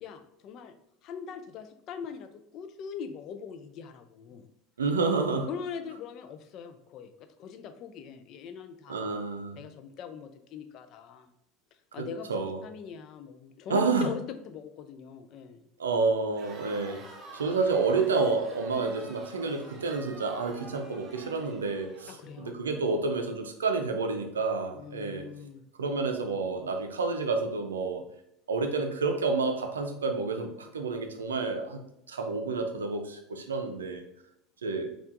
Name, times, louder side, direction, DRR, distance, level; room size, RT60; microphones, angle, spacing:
voice 1, 0.0-0.8 1.0-4.5 5.5-9.1 9.6-11.3 11.9-15.7 22.1-22.8 24.7-25.6, left 7 dB, 50° left, 9 dB, 0.4 m, -42 dB
voice 2, 4.8-5.5 8.9-9.6 12.0-12.6 13.7-14.1 15.8-17.0 17.3-25.3 25.8-28.0 28.5-31.8 32.1-34.0 34.6-34.9, right 4 dB, 90° right, 5 dB, 0.4 m, -29 dB
Crowd, 16.3-22.5, right 2 dB, 35° right, 1.0 m, -49 dB
4.4 x 2.4 x 2.5 m, 0.80 s
hypercardioid pair, 80°, 0 cm